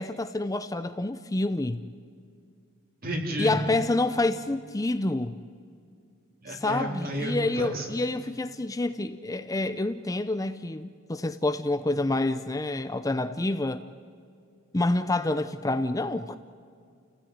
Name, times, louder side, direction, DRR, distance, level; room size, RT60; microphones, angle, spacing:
voice 1, 0.0-1.8 3.4-5.4 6.5-13.8 14.7-16.4, left 2 dB, 15° left, 0.6 m, -28 dB
voice 2, 3.0-3.6 6.4-7.9, right 1 dB, 45° right, 3.8 m, -31 dB
29.5 x 16.5 x 9.4 m
head